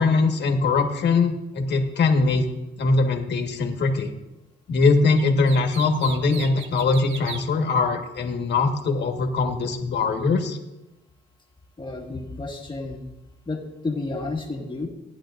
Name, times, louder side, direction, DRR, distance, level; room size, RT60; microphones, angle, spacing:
voice 1, 0.0-2.4 2.8-4.1 4.7-10.6, left 3 dB, 60° left, 4 dB, 1.6 m, -21 dB
sound 1, 5.1-7.4, right 7 dB, 75° right, 1.0 m, -38 dB
voice 2, 11.8-13.0 13.4-14.9, left 3 dB, 25° left, 0 dB, 1.7 m, -31 dB
16.5 x 10.0 x 2.6 m, 0.97 s
cardioid pair, 90°, 20 cm